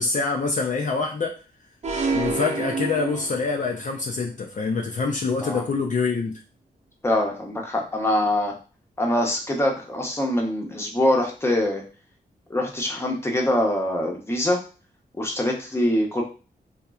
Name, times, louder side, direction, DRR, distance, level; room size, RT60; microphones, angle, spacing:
voice 1, 0.0-1.4 2.1-6.4, left 4 dB, 45° left, 1 dB, 0.4 m, -25 dB
sound 1, 1.8-3.8, right 3 dB, 40° right, 0.5 m, -28 dB
voice 2, 7.0-8.5 9.0-11.8 12.5-14.6 15.2-16.2, left 1 dB, 15° left, 0 dB, 0.7 m, -24 dB
2.9 x 2.1 x 2.3 m, 0.35 s
cardioid pair, 70°, 17 cm